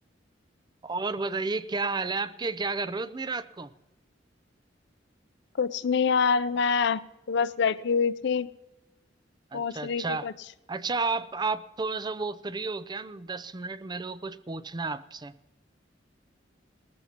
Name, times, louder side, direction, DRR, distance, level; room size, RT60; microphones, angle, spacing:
voice 1, 0.8-3.7 9.5-10.3 10.7-15.4, right 3 dB, 25° right, 14 dB, 0.5 m, -32 dB
voice 2, 5.6-7.0 7.3-8.5 9.5-10.3, left 5 dB, 65° left, 16 dB, 0.5 m, -25 dB
19.0 x 14.0 x 2.9 m, 1.0 s
head